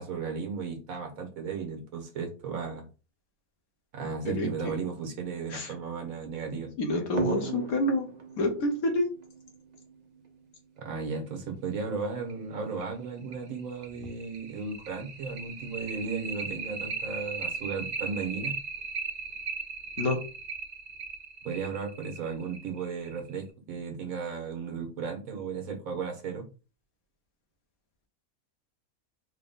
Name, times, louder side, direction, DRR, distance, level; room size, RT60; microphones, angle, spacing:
voice 1, 0.0-2.9 3.9-6.7 10.8-18.6 21.4-26.5, right 5 dB, 80° right, 1.5 m, -35 dB
voice 2, 4.3-4.7 5.5-5.7 6.8-8.1 8.4-9.1 20.0-20.2, left 1 dB, 80° left, 1.5 m, -28 dB
sound 1, 7.2-10.3 11.8-11.9 12.3-12.4 12.8-12.9 13.3-23.4, right 5 dB, 50° right, 0.5 m, -37 dB
4.2 x 2.2 x 3.9 m
omnidirectional pair, 1.5 m